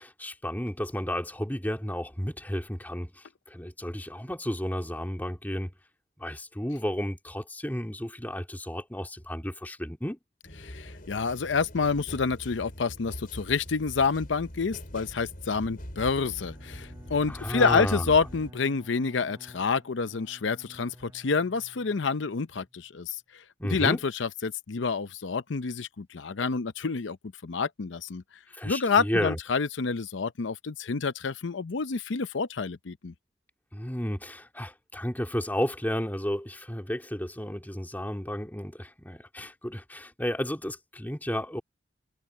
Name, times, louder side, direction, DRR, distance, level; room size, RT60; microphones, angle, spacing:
voice 1, 0.0-5.7 6.2-10.2 17.3-18.1 23.6-24.0 28.5-29.4 33.7-41.6, equal, 10° left, 2.4 m, -32 dB
sound 1, 10.4-18.5, equal, 50° left, 6.3 m, -43 dB
voice 2, 10.6-23.2 23.6-27.2 27.4-28.2 28.6-33.1, left 5 dB, 75° left, 0.6 m, -28 dB
Bowed string instrument, 16.2-22.9, equal, 15° right, 3.7 m, -52 dB
head